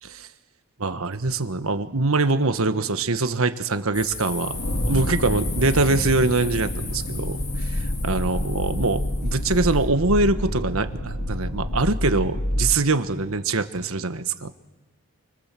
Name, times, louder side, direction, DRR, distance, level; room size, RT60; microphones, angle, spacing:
voice 1, 0.8-4.6 4.9-14.5, right 3 dB, 75° right, 9 dB, 1.4 m, -23 dB
sound 1, 3.9-9.9, left 5 dB, 50° left, 3.6 m, -37 dB
sound 2, 4.5-12.8, left 1 dB, 80° left, 2.9 m, -27 dB
30.0 x 24.5 x 7.7 m, 1.1 s
head